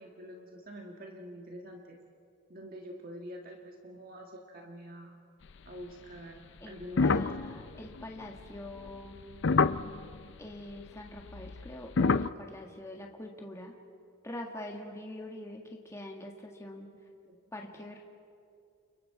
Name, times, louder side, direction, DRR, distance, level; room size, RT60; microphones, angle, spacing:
voice 1, 0.0-2.0 2.5-5.2 5.6-6.4 6.6-7.4 17.2-17.4, equal, 40° right, 1 dB, 1.6 m, -46 dB
voice 2, 6.6-9.2 10.4-13.7 14.2-16.9 17.5-18.0, left 1 dB, 15° left, 1 dB, 1.6 m, -44 dB
sound 1, 6.8-10.2 11.2-12.3, left 4 dB, 55° left, 0.5 m, -27 dB
29.5 x 29.0 x 4.7 m, 2.5 s
head